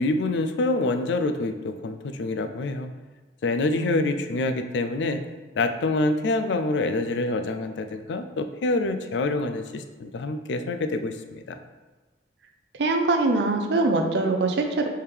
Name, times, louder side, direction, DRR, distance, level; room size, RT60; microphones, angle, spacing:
voice 1, 0.0-2.9 3.4-5.2 5.6-11.6, left 2 dB, 80° left, 8 dB, 0.4 m, -26 dB
voice 2, 3.7-4.2 12.8-14.9, right 2 dB, 70° right, 4 dB, 0.5 m, -23 dB
4.5 x 3.5 x 3.4 m, 1.2 s
head